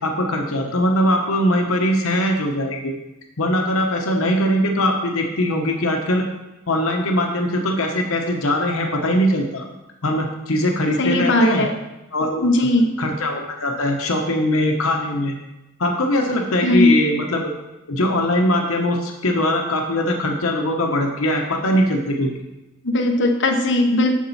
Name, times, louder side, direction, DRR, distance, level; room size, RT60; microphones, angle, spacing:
voice 1, 0.0-3.0 3.4-6.2 6.7-9.6 10.0-11.6 12.1-12.5 13.0-15.4 15.8-17.5 17.9-22.3, left 1 dB, 90° left, 2 dB, 1.0 m, -21 dB
voice 2, 11.0-11.7 12.4-12.9 16.6-17.0 22.8-24.2, left 1 dB, 60° left, 3 dB, 1.0 m, -18 dB
7.4 x 6.7 x 4.2 m, 0.99 s
head